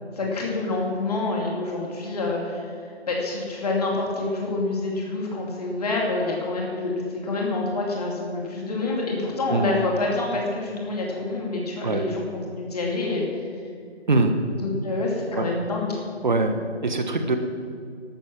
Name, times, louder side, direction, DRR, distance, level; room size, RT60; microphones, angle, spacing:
voice 1, 0.1-2.7 3.1-6.9 7.2-13.3 14.5-16.0, left 2 dB, 35° left, -2 dB, 2.6 m, -27 dB
voice 2, 16.2-17.4, right 2 dB, 45° right, 7 dB, 1.3 m, -23 dB
13.0 x 12.5 x 5.9 m, 2.3 s
figure-of-eight pair, 155°, 33 cm